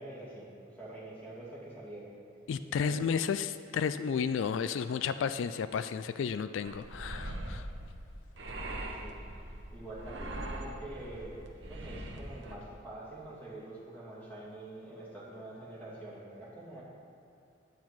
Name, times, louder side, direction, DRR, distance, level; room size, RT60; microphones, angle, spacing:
voice 1, 0.0-2.1 2.7-3.0 9.0-9.3 9.7-11.4 11.7-16.8, right 1 dB, 10° left, -8 dB, 2.6 m, -45 dB
voice 2, 2.5-7.7, left 6 dB, 75° left, 13 dB, 0.3 m, -32 dB
sound 1, 6.7-12.6, right 1 dB, 60° right, 1.0 m, -41 dB
9.5 x 8.9 x 4.6 m, 2.7 s
head